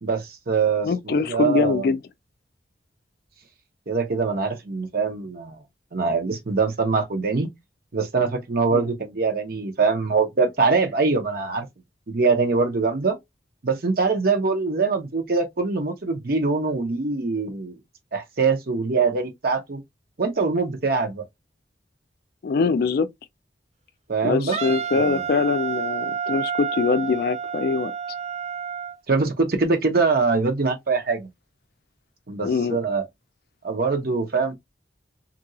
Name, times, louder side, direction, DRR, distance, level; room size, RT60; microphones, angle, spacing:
voice 1, 0.0-1.9 3.9-5.6 5.9-7.5 7.9-11.7 12.1-13.2 13.6-17.8 18.1-19.8 20.2-21.2 24.1-24.6 24.9-25.3 29.1-31.3 32.3-33.0 33.6-34.5, right 4 dB, 55° right, 0.8 m, -23 dB
voice 2, 0.8-2.0 8.7-8.8 22.4-23.1 24.2-27.9 32.4-32.8, left 4 dB, 60° left, 0.3 m, -23 dB
Wind instrument woodwind instrument, 24.5-29.0, right 7 dB, 40° right, 0.3 m, -29 dB
2.8 x 2.6 x 2.7 m
head